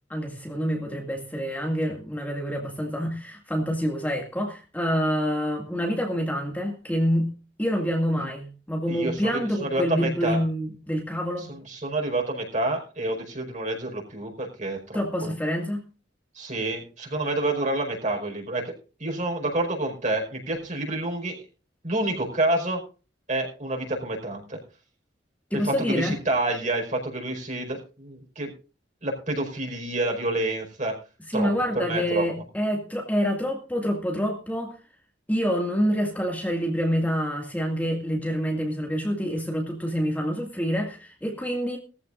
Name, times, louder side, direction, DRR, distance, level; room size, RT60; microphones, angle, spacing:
voice 1, 0.1-7.3 7.6-11.5 14.9-15.8 25.5-26.2 31.3-34.7 35.3-41.8, equal, 10° left, 2.2 m, -27 dB
voice 2, 8.9-10.4 11.4-15.3 16.3-18.7 19.0-21.4 21.8-22.8 23.3-24.6 25.5-28.5 29.0-30.9 31.3-32.3, right 2 dB, 40° right, 5.0 m, -28 dB
19.5 x 14.5 x 2.6 m
head